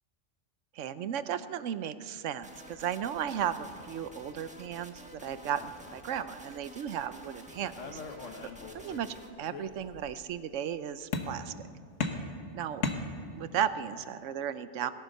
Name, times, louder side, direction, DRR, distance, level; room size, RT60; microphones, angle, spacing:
voice 1, 0.7-8.0 8.7-11.5 12.5-12.8 13.3-14.9, right 9 dB, 80° right, 13 dB, 1.0 m, -35 dB
sound 1, 2.4-9.3, equal, 5° right, 1.2 m, -50 dB
sound 2, 7.7-9.1 9.4-10.2 11.1-11.6 12.0-13.6, left 4 dB, 80° left, 1.5 m, -37 dB
17.5 x 11.0 x 6.5 m, 2.3 s
omnidirectional pair, 1.3 m